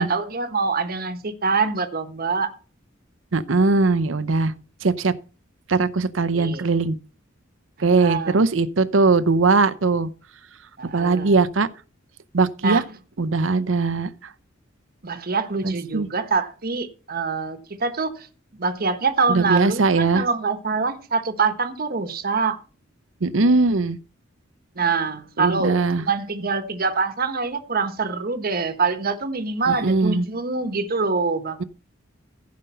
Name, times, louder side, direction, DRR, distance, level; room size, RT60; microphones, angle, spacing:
voice 1, 0.0-2.5 6.3-6.7 8.0-8.4 10.8-11.4 12.6-12.8 15.0-18.3 18.6-22.6 24.7-31.6, right 4 dB, 50° right, 1.2 m, -25 dB
voice 2, 3.3-4.5 4.8-5.1 5.7-7.0 7.8-10.1 10.9-11.7 12.3-12.8 13.2-14.1 15.6-16.1 19.3-20.2 23.2-24.0 25.4-26.0 29.7-30.2, right 3 dB, 80° right, 0.7 m, -20 dB
15.5 x 5.3 x 5.6 m
head